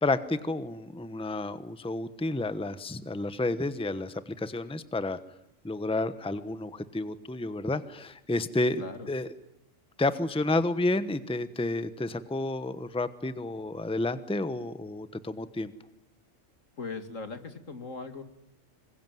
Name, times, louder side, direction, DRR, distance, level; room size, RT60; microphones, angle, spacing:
voice 1, 0.0-5.2 5.6-8.8 9.1-9.3 10.0-15.7, left 2 dB, 5° left, 12 dB, 1.0 m, -30 dB
voice 2, 8.8-9.1 16.8-18.2, left 4 dB, 75° left, 8 dB, 2.7 m, -39 dB
26.0 x 22.5 x 9.3 m, 0.86 s
omnidirectional pair, 1.3 m